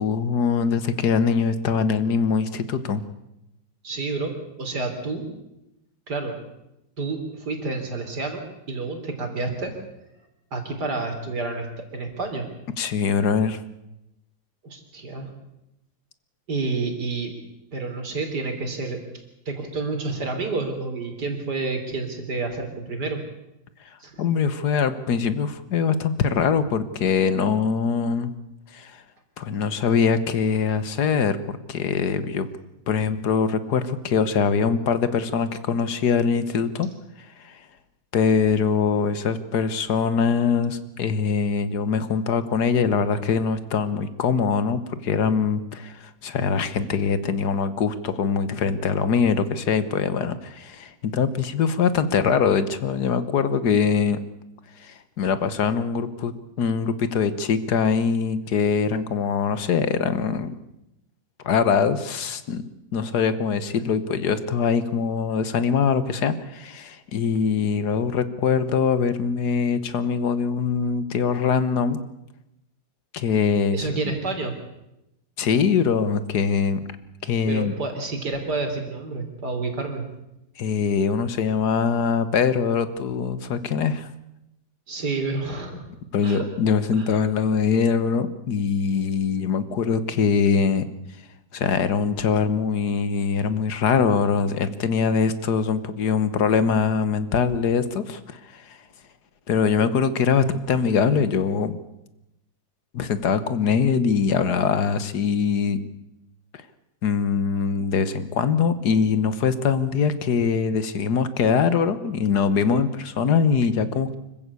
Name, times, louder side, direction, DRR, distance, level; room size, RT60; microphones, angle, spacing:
voice 1, 0.0-3.0 12.8-13.6 24.2-28.3 28.7-29.0 29.4-31.4 31.7-32.5 32.9-36.9 37.4-37.6 38.1-54.2 54.8-56.3 56.6-60.5 61.4-62.6 62.9-72.0 73.1-74.0 75.4-76.8 77.2-77.7 80.6-84.1 86.1-90.9 91.5-98.8 99.5-101.8 102.9-105.8 107.0-114.1, left 6 dB, 60° left, 13 dB, 1.7 m, -23 dB
voice 2, 3.8-4.3 4.6-5.3 6.1-6.3 7.0-9.7 10.5-11.7 11.9-12.5 14.6-15.3 16.5-17.3 17.7-19.0 19.5-23.2 24.0-24.2 73.7-74.5 77.5-80.1 84.9-85.9 86.2-86.4 87.0-87.2, right 3 dB, 55° right, 5 dB, 3.9 m, -29 dB
25.0 x 15.0 x 8.4 m, 0.89 s
omnidirectional pair, 2.1 m